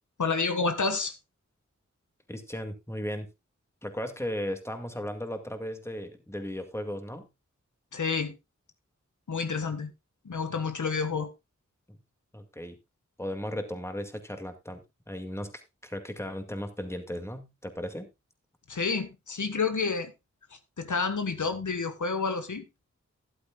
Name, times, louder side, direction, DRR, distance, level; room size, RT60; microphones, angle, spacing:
voice 1, 0.2-1.1 7.9-8.3 9.3-9.9 10.2-11.3 18.7-20.1 20.5-22.6, left 4 dB, 85° left, 1.4 m, -29 dB
voice 2, 2.3-3.3 3.8-7.3 11.9-12.0 12.3-12.8 13.2-15.5 15.8-18.1, equal, 10° left, 2.0 m, -36 dB
13.0 x 11.5 x 2.3 m
wide cardioid pair, 70°, 29 cm